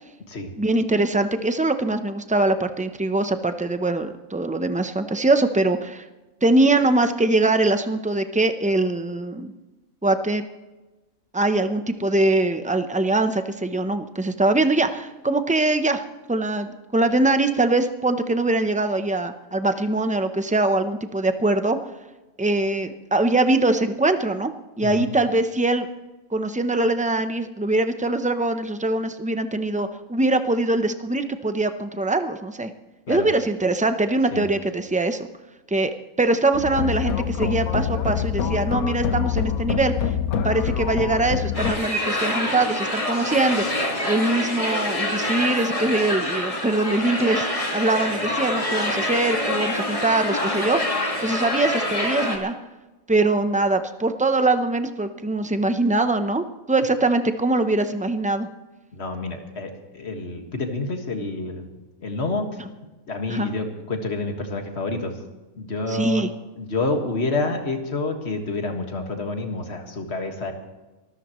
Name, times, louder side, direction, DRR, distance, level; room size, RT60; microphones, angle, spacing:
voice 1, 0.6-6.0 6.4-9.5 10.0-10.4 11.3-16.0 16.3-21.8 22.4-24.5 24.8-25.9 26.3-32.7 33.1-35.3 35.7-39.9 40.4-50.8 51.2-52.5 53.1-58.5 63.3-63.5 65.9-66.3, right 2 dB, 10° right, 8 dB, 0.3 m, -22 dB
sound 1, 36.5-41.7, left 8 dB, 85° left, 1.4 m, -25 dB
sound 2, 41.5-52.4, left 1 dB, 25° left, 2.1 m, -26 dB
voice 2, 58.9-61.7 62.0-62.5 63.1-65.1 65.6-66.2 66.6-70.5, left 2 dB, 50° left, 4 dB, 2.0 m, -28 dB
24.5 x 13.5 x 3.1 m, 1.1 s
omnidirectional pair, 1.5 m